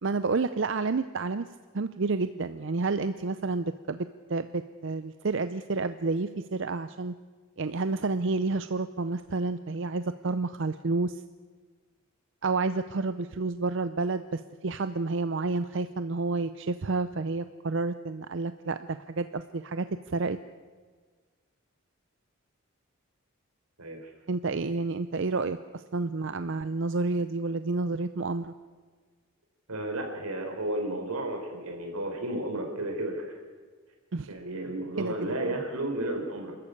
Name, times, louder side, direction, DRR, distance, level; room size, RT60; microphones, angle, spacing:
voice 1, 0.0-1.5 1.7-7.1 7.6-11.2 12.4-20.4 24.3-28.5 34.1-34.3 35.0-35.1, right 3 dB, 55° right, 12 dB, 0.6 m, -30 dB
voice 2, 23.8-24.1 29.7-33.4 34.3-36.5, right 1 dB, 85° right, 2 dB, 4.6 m, -33 dB
28.0 x 13.5 x 8.6 m, 1.5 s
head